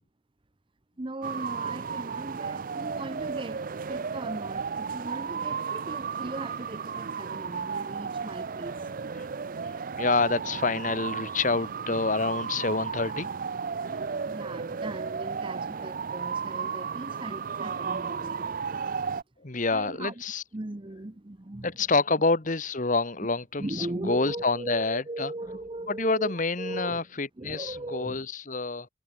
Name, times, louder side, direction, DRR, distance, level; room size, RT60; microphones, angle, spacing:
voice 1, 1.0-3.6 3.9-8.9 14.3-18.5 19.7-20.1 20.5-21.7 23.6-27.1 27.4-28.3, right 2 dB, 30° right, 0.8 m, -38 dB
sound 1, 1.2-19.2, right 6 dB, 50° right, 0.5 m, -34 dB
voice 2, 9.7-13.3 19.4-20.4 21.6-25.3 25.9-28.9, left 3 dB, 45° left, 1.5 m, -27 dB
head